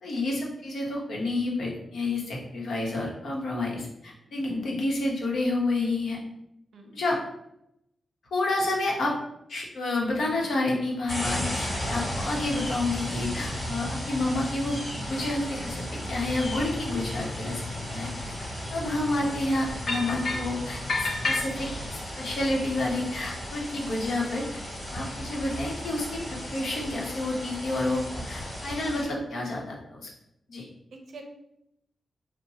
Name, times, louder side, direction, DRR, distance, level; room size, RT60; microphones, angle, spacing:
voice 1, 0.0-6.2 6.9-7.2 8.3-9.1 9.5-17.7 17.9-18.4 18.7-24.4 24.9-30.1 30.5-30.6, left 2 dB, 75° left, -2 dB, 0.9 m, -29 dB
voice 2, 4.3-4.7 6.7-7.0 30.9-31.2, right 3 dB, 70° right, 3 dB, 0.5 m, -48 dB
sound 1, 11.1-29.0, equal, 30° left, 1.3 m, -35 dB
sound 2, 19.9-20.5 20.9-22.0, left 3 dB, 50° left, 0.5 m, -29 dB
4.1 x 2.1 x 2.8 m, 0.81 s
wide cardioid pair, 145°, 0 cm